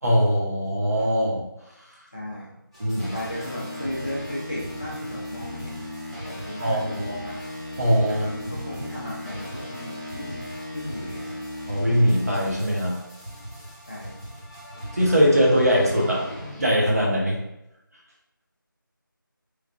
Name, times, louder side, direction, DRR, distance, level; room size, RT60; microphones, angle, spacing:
voice 1, 0.0-1.4 2.8-3.1 6.6-7.2 7.8-8.3 11.7-13.0 14.9-16.3 16.6-17.4, equal, 45° right, -4 dB, 0.9 m, -21 dB
voice 2, 2.1-2.6 3.1-5.8 6.2-11.5 13.8-14.1, left 1 dB, 25° left, -7 dB, 0.6 m, -36 dB
sound 1, 2.7-17.1, left 1 dB, 15° right, 0.9 m, -37 dB
3.3 x 3.1 x 2.4 m, 0.88 s
figure-of-eight pair, 165°, 12 cm